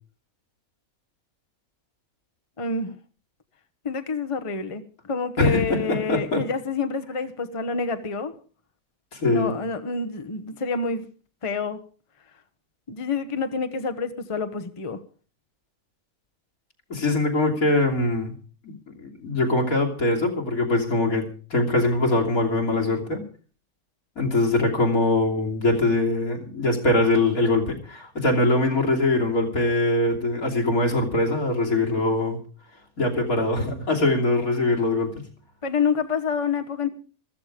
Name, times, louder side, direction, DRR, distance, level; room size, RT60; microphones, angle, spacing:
voice 1, 2.6-2.9 3.8-8.3 9.2-11.0 11.4-11.8 12.9-15.0 35.6-36.9, left 5 dB, 25° left, 1.0 m, -27 dB
voice 2, 5.4-6.4 9.1-9.5 16.9-18.3 18.6-23.2 24.2-32.4 33.0-35.3, left 2 dB, 75° left, 3.5 m, -22 dB
14.5 x 14.0 x 5.1 m
omnidirectional pair, 1.5 m